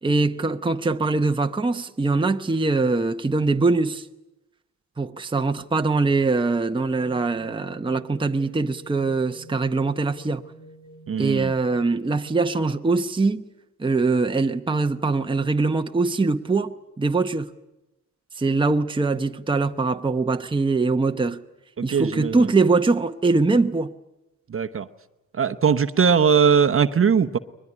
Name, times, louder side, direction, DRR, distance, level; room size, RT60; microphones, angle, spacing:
voice 1, 0.0-4.1 5.0-10.4 11.2-13.4 13.8-17.5 18.4-21.4 21.8-23.9, right 3 dB, 15° right, 0.8 m, -22 dB
sound 1, 7.0-12.6, right 1 dB, 65° left, 4.1 m, -47 dB
voice 2, 11.1-11.5 21.8-22.5 24.5-24.9 25.3-27.4, right 6 dB, 40° right, 0.9 m, -20 dB
22.5 x 20.5 x 9.9 m
cardioid pair, 95°, 32 cm